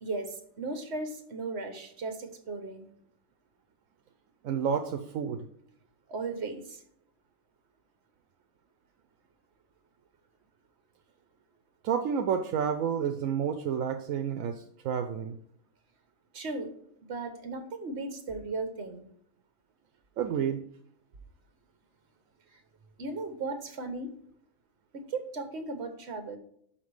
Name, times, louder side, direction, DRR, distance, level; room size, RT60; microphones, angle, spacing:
voice 1, 0.0-2.9 6.1-6.8 16.3-16.7 17.1-19.1 23.0-24.1 24.9-26.4, right 3 dB, 55° right, 7 dB, 1.3 m, -36 dB
voice 2, 4.4-5.4 11.8-15.4 20.2-20.6, right 7 dB, 80° right, 6 dB, 1.0 m, -30 dB
5.9 x 5.8 x 4.7 m, 0.67 s
omnidirectional pair, 1.4 m